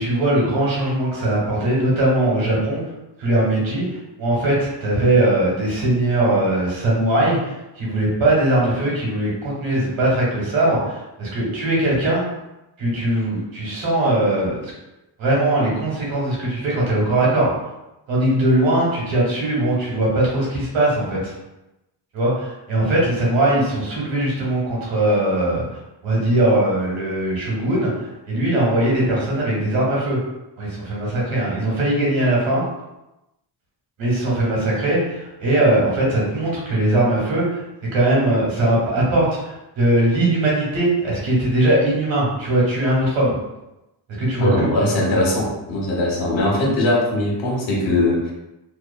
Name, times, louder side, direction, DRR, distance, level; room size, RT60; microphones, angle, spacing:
voice 1, 0.0-2.8 3.2-12.2 12.8-14.6 15.2-17.5 18.1-21.3 22.1-25.6 26.0-30.2 30.6-32.6 34.0-37.6 37.9-43.3 44.2-44.7, right 1 dB, 75° right, -5 dB, 1.3 m, -20 dB
voice 2, 44.4-48.3, left 1 dB, 75° left, -2 dB, 1.0 m, -20 dB
2.9 x 2.2 x 2.2 m, 0.94 s
cardioid pair, 85°, 46 cm